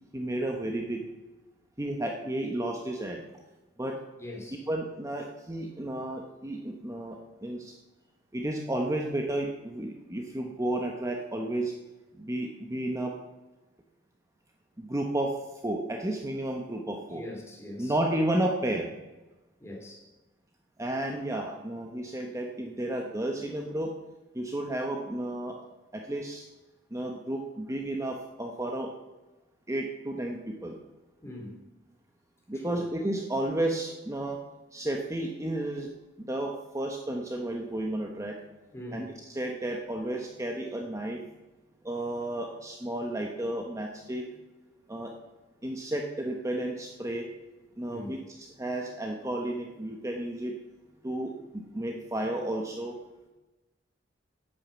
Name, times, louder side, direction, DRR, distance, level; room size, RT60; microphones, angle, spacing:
voice 1, 0.1-1.0 1.8-3.2 3.8-4.0 4.7-7.7 8.3-11.7 12.2-13.1 14.8-15.3 15.6-17.2 17.8-18.9 20.8-23.9 24.3-25.6 25.9-26.4 26.9-28.9 29.7-30.8 32.5-34.4 34.7-35.9 36.2-38.4 38.9-41.2 41.8-44.3 44.9-45.1 45.6-47.3 47.8-50.5 51.0-53.0, right 1 dB, 15° right, 1.1 m, -32 dB
voice 2, 4.2-4.7 17.1-17.9 19.6-20.1 31.2-31.6 32.5-32.8 38.7-39.1 47.9-48.1, left 1 dB, 15° left, 2.9 m, -42 dB
11.0 x 8.7 x 7.1 m
head